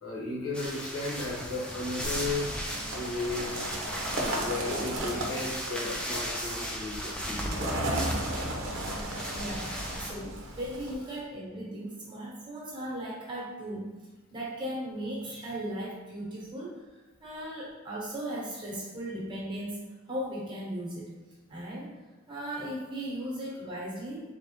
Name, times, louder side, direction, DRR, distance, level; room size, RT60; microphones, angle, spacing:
voice 1, 0.0-2.5 2.9-3.6 4.2-8.0 8.3-8.6, left 2 dB, 75° left, -5 dB, 1.0 m, -35 dB
sound 1, 0.5-10.1, equal, 5° left, 0.4 m, -37 dB
sound 2, 2.0-10.9, right 1 dB, 65° right, 0.7 m, -35 dB
voice 2, 9.3-13.9 14.3-16.7 17.2-19.8 20.1-21.1 21.5-21.9 22.3-24.2, right 1 dB, 20° right, -6 dB, 1.2 m, -37 dB
3.7 x 3.3 x 2.9 m, 1.2 s
head